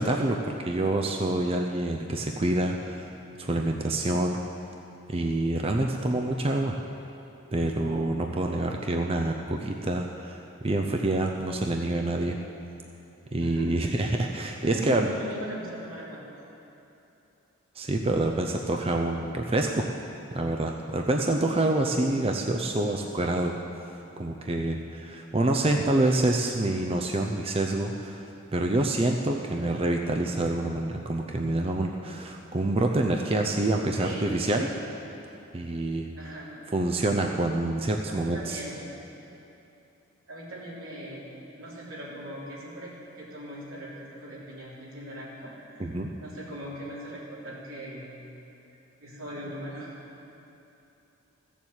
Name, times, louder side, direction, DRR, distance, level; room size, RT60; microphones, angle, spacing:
voice 1, 0.0-3.1 3.4-4.4 5.1-6.8 7.5-12.4 13.3-15.1 17.8-19.8 20.3-23.6 24.2-34.7 35.5-36.1 36.7-38.6 45.8-46.1, right 2 dB, 25° right, 2 dB, 0.5 m, -27 dB
voice 2, 14.6-16.2 29.5-29.7 34.0-34.5 36.2-36.6 38.1-38.8 40.3-41.3 41.6-48.2 49.0-50.0, right 1 dB, 85° right, -6 dB, 3.3 m, -40 dB
14.5 x 7.2 x 8.0 m, 2.9 s
head